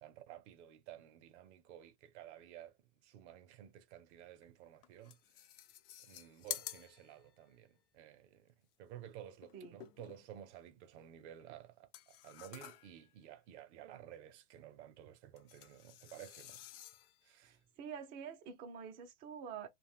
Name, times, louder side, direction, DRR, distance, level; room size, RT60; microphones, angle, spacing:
voice 1, 0.0-5.2 6.0-16.6 17.2-17.6, right 11 dB, 55° right, 0.7 m, -54 dB
sound 1, 4.4-4.5 4.8-7.5 9.4-10.5 11.9-13.1 15.4-17.3, left 12 dB, 45° left, 0.5 m, -50 dB
voice 2, 17.4-19.7, right 7 dB, 25° right, 0.4 m, -47 dB
2.4 x 2.1 x 3.5 m
hypercardioid pair, 120°, 42 cm